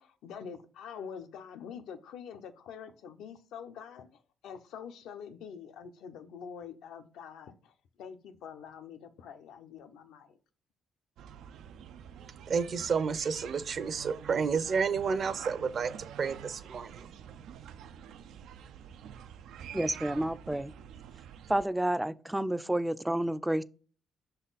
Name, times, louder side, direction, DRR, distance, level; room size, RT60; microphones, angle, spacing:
voice 1, 0.0-10.4, left 7 dB, 85° left, 0.7 m, -46 dB
sound 1, 11.2-21.6, right 9 dB, 80° right, 0.4 m, -47 dB
voice 2, 12.5-17.1, right 5 dB, 55° right, 0.8 m, -31 dB
voice 3, 19.7-20.7 21.5-23.6, right 1 dB, 5° right, 0.4 m, -30 dB
6.0 x 4.0 x 4.1 m
cardioid pair, 90°, 0 cm